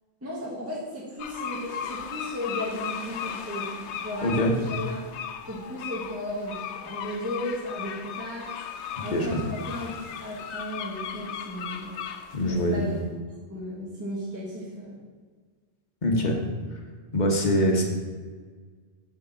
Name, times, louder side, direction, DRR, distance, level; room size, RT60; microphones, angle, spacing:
voice 1, 0.2-5.0 5.5-8.5 9.0-9.9 10.2-11.9 12.5-12.9 13.5-14.9 16.2-16.3, equal, 15° right, -6 dB, 1.4 m, -35 dB
sound 1, 1.2-12.8, left 8 dB, 85° left, 0.9 m, -37 dB
voice 2, 4.2-4.5 9.1-9.4 12.3-12.9 16.0-16.4 17.1-17.8, equal, 45° left, 1 dB, 1.1 m, -23 dB
6.5 x 3.8 x 6.2 m, 1.5 s
omnidirectional pair, 1.1 m